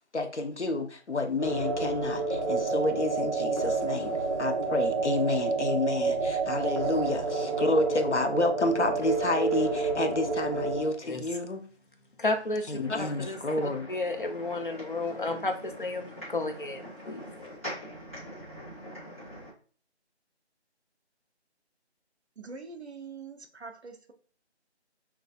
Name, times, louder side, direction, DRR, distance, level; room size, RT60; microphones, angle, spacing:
voice 1, 0.1-11.6 12.7-13.9, left 2 dB, 85° left, 0.9 m, -30 dB
sound 1, 1.4-10.9, right 3 dB, 20° right, 0.8 m, -29 dB
voice 2, 12.2-13.4 13.9-17.2, left 2 dB, 50° left, 0.8 m, -32 dB
sound 2, 12.8-19.5, equal, 15° left, 1.0 m, -43 dB
voice 3, 22.4-24.1, right 4 dB, 70° right, 0.9 m, -44 dB
5.9 x 2.2 x 2.4 m
figure-of-eight pair, 165°, 34 cm